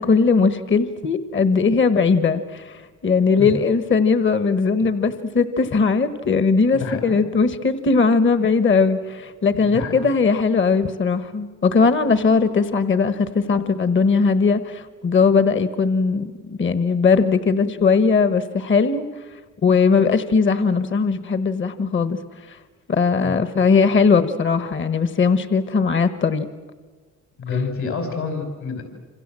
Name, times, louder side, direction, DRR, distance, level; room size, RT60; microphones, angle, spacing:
voice 1, 0.0-19.0 19.6-22.2 22.5-22.6 22.9-26.5, left 5 dB, 40° left, 12 dB, 1.3 m, -19 dB
voice 2, 6.7-7.2 9.5-10.0 23.2-23.4 27.4-28.8, left 5 dB, 70° left, 4 dB, 5.9 m, -28 dB
27.0 x 26.5 x 7.6 m, 1.4 s
cardioid pair, 90°, 30 cm